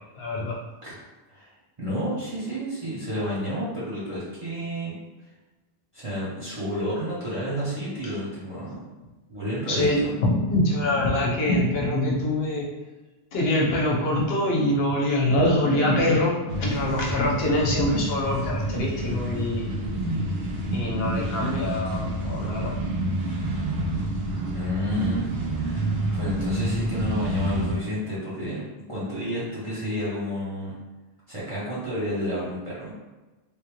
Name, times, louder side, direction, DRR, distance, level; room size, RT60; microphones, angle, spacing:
voice 1, 0.1-0.6 9.7-12.7 13.3-19.7 20.7-22.8, left 1 dB, 70° left, -3 dB, 1.0 m, -24 dB
voice 2, 1.8-4.9 5.9-8.8 9.3-10.1 24.5-25.3 25.5-30.7 31.3-32.9, equal, 35° right, -9 dB, 0.8 m, -30 dB
sound 1, 16.5-27.7, right 1 dB, 75° right, 0.9 m, -28 dB
3.4 x 2.4 x 3.0 m, 1.2 s
omnidirectional pair, 1.1 m